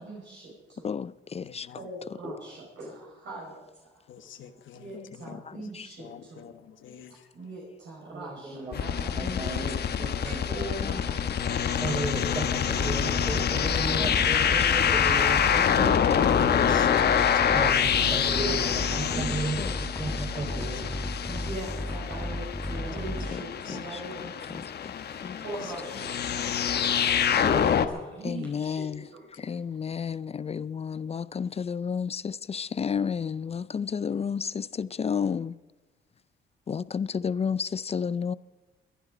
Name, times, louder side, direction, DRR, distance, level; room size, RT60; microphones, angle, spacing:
voice 1, 0.0-0.9 1.8-3.9 4.7-6.4 7.3-12.3 13.2-15.6 16.4-17.5 18.3-19.7 21.3-24.7 25.2-26.5 27.2-29.3, right 2 dB, 65° right, 5.1 m, -41 dB
voice 2, 0.8-1.7 4.9-5.0 5.5-5.9 9.2-9.5 10.8-10.9 19.6-19.7 23.7-23.8 24.8-24.9 25.2-25.4 28.2-29.0 29.4-35.5 36.7-38.3, left 6 dB, 30° left, 0.4 m, -31 dB
voice 3, 1.4-1.9 4.1-5.4 6.0-7.5 8.7-9.0 10.3-10.4 14.8-14.9 16.2-17.7 18.0-18.1 20.0-20.7 22.0-22.3 22.7-22.9 23.4-23.8 24.9-25.7 26.4-26.8 29.4-29.5, left 9 dB, 75° left, 1.3 m, -47 dB
voice 4, 8.0-10.4 11.8-16.0 17.5-21.1 22.8-23.3, right 2 dB, 25° right, 4.6 m, -35 dB
sound 1, 8.7-27.9, left 8 dB, 55° left, 1.1 m, -26 dB
sound 2, 12.7-23.3, left 1 dB, 5° left, 1.2 m, -34 dB
22.0 x 11.0 x 5.0 m
cardioid pair, 90°, 20 cm